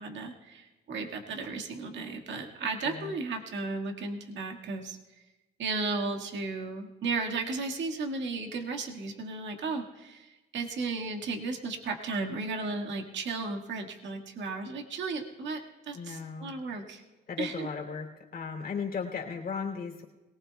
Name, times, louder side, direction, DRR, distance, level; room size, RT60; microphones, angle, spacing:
voice 1, 0.0-5.0 5.6-17.0 17.4-17.7, right 3 dB, 70° right, 1 dB, 1.8 m, -34 dB
voice 2, 2.8-3.1 15.9-16.5 17.3-20.0, left 5 dB, 50° left, 1 dB, 3.0 m, -36 dB
21.5 x 19.0 x 2.3 m, 1.1 s
cardioid pair, 90°, 20 cm